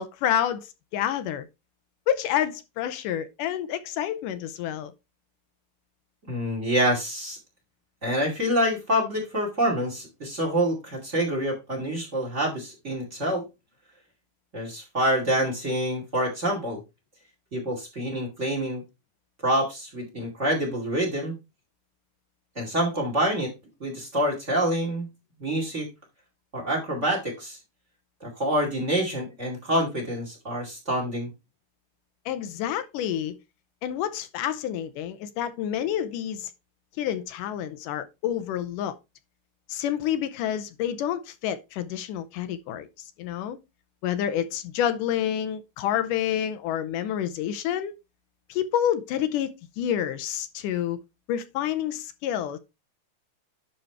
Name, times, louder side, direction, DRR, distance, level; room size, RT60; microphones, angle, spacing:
voice 1, 0.0-1.5 2.1-4.9 32.3-33.4 33.8-36.5 37.0-39.0 39.7-42.9 43.2-43.6 44.0-47.9 48.5-51.0 51.3-52.6, left 10 dB, 80° left, 2.3 m, -28 dB
voice 2, 6.3-7.4 8.0-13.4 14.5-16.8 17.5-18.8 19.4-21.3 22.6-23.5 23.8-25.1 25.4-25.9 26.5-27.6 28.2-31.3, equal, 25° right, 2.2 m, -26 dB
11.0 x 3.9 x 4.5 m
omnidirectional pair, 3.8 m